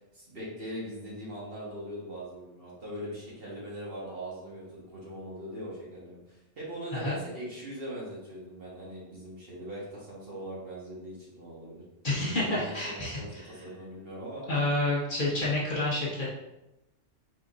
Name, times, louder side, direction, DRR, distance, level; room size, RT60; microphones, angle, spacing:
voice 1, 0.1-11.8 12.1-14.4, equal, 50° right, -6 dB, 1.6 m, -41 dB
voice 2, 12.0-13.4 14.4-16.3, left 2 dB, 45° left, -6 dB, 1.0 m, -29 dB
4.2 x 4.0 x 2.6 m, 0.94 s
omnidirectional pair, 1.3 m